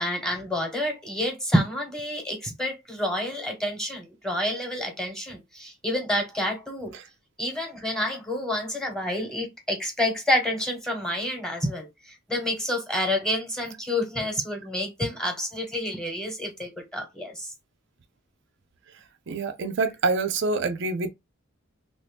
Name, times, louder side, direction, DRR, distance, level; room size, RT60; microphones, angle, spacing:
voice 1, 0.0-6.9 7.4-17.5, left 1 dB, 5° left, 1.1 m, -28 dB
voice 2, 19.3-21.1, right 3 dB, 60° right, 0.4 m, -26 dB
3.0 x 2.7 x 3.3 m
head